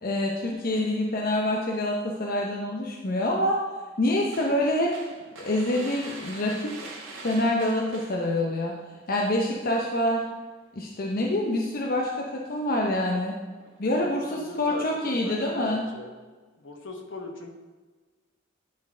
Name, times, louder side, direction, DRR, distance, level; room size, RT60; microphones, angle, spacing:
voice 1, 0.0-3.6 4.0-4.9 5.4-6.7 7.2-8.8 9.1-10.2 10.8-13.3 13.8-15.9, left 1 dB, 50° left, -1 dB, 0.7 m, -26 dB
sound 1, 4.3-8.5 8.9-9.1 9.4-10.4 11.1-11.4 11.9-12.6 12.9-13.0 13.5-13.8, right 2 dB, 80° right, 1.7 m, -44 dB
voice 2, 14.0-16.1 16.6-17.5, left 2 dB, 65° left, 3 dB, 1.1 m, -39 dB
10.5 x 4.5 x 3.8 m, 1.3 s
head